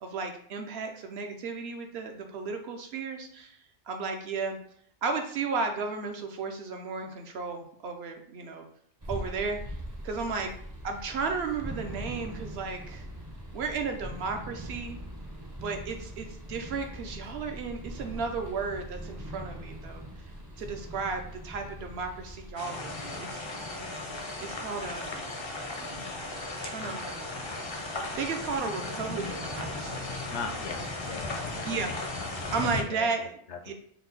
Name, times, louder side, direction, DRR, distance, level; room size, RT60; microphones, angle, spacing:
voice 1, 0.0-3.6 3.9-4.6 5.0-8.6 9.1-9.8 10.0-10.5 10.8-13.1 13.5-15.0 15.6-20.0 20.6-23.4 24.4-25.3 25.7-27.3 28.2-30.0 31.6-31.9 32.5-33.3 33.6-33.7, right 4 dB, 65° right, 5 dB, 0.8 m, -34 dB
sound 1, 9.0-22.5, equal, 25° right, 0.5 m, -41 dB
sound 2, 22.6-32.8, left 2 dB, 35° left, 0.4 m, -36 dB
voice 2, 30.3-31.9 32.2-33.7, left 4 dB, 80° left, 5 dB, 0.9 m, -40 dB
4.3 x 2.1 x 3.9 m, 0.65 s
omnidirectional pair, 1.2 m